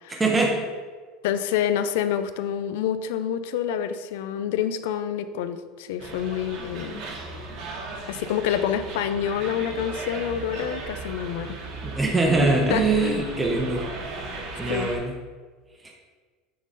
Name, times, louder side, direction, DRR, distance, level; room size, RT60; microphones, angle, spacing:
voice 1, 0.1-0.6 11.8-13.8 14.6-15.1 15.8-15.9, right 3 dB, 10° right, -1 dB, 0.7 m, -23 dB
voice 2, 1.2-6.9 8.1-11.6 12.4-13.5 14.7-14.9, left 9 dB, 80° left, 11 dB, 0.5 m, -27 dB
sound 1, 6.0-15.0, right 3 dB, 45° right, 1.0 m, -36 dB
9.2 x 3.8 x 4.1 m, 1.5 s
cardioid pair, 175°, 0 cm